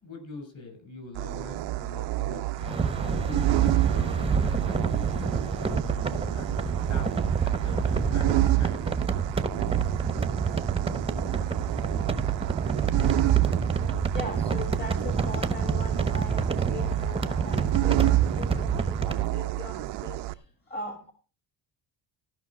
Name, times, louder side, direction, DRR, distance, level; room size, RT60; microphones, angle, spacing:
voice 1, 0.0-3.5 3.8-8.9, left 3 dB, 40° left, 4 dB, 6.6 m, -43 dB
sound 1, 1.2-20.3, right 16 dB, 70° right, 0.7 m, -29 dB
sound 2, 2.6-19.3, right 5 dB, 15° right, 0.9 m, -28 dB
voice 2, 14.1-21.1, left 2 dB, 20° left, 6 dB, 1.7 m, -40 dB
15.0 x 5.8 x 6.0 m, 0.36 s
cardioid pair, 115°, 44 cm